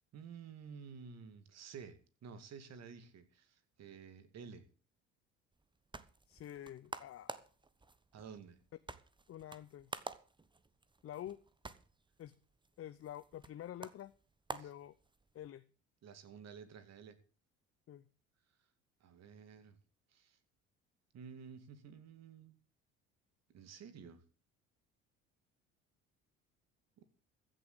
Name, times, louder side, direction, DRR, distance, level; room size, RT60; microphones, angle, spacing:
voice 1, 0.1-4.7 8.1-8.6 14.6-14.7 16.0-17.2 19.0-19.8 20.1-20.4 21.1-22.6 23.5-24.2 27.0-27.1, right 6 dB, 50° right, 11 dB, 2.4 m, -52 dB
sound 1, 5.5-15.5, right 3 dB, 15° right, 1.2 m, -51 dB
voice 2, 6.3-7.4 9.3-9.9 11.0-11.4 12.2-12.3 12.8-14.1 14.5-14.9 15.3-15.6 17.9-18.0, left 11 dB, 45° left, 13 dB, 0.8 m, -48 dB
15.0 x 7.0 x 7.9 m, 0.39 s
hypercardioid pair, 65°, 33 cm